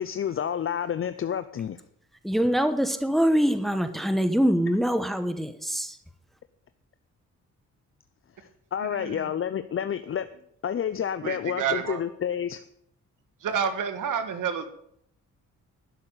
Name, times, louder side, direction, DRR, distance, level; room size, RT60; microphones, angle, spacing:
voice 1, 0.0-1.8 8.4-10.3 10.6-12.6, left 8 dB, 45° left, 12 dB, 0.6 m, -29 dB
voice 2, 2.2-6.0, equal, ahead, 9 dB, 1.1 m, -24 dB
voice 3, 8.8-9.3 11.2-12.0 13.4-14.7, right 7 dB, 75° right, 9 dB, 1.6 m, -29 dB
12.0 x 6.5 x 8.9 m, 0.70 s
cardioid pair, 100°, 31 cm